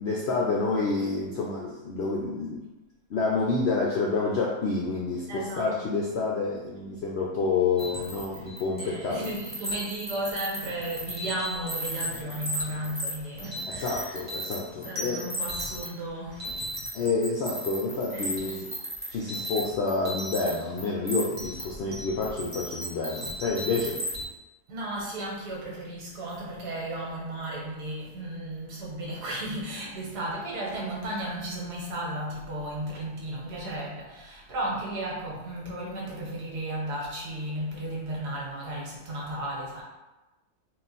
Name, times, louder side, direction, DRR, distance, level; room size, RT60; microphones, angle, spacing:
voice 1, 0.0-2.7 3.1-9.2 13.7-15.3 16.9-18.7 19.1-24.0, left 3 dB, 75° left, -3 dB, 0.6 m, -28 dB
voice 2, 5.3-5.7 8.7-14.2 14.8-16.6 18.1-18.6 19.0-19.2 24.7-39.8, right 1 dB, 85° right, -3 dB, 1.6 m, -34 dB
sound 1, 7.8-8.9 9.2-24.2, right 1 dB, 5° right, 1.2 m, -35 dB
3.8 x 2.5 x 4.0 m, 1.0 s
omnidirectional pair, 1.7 m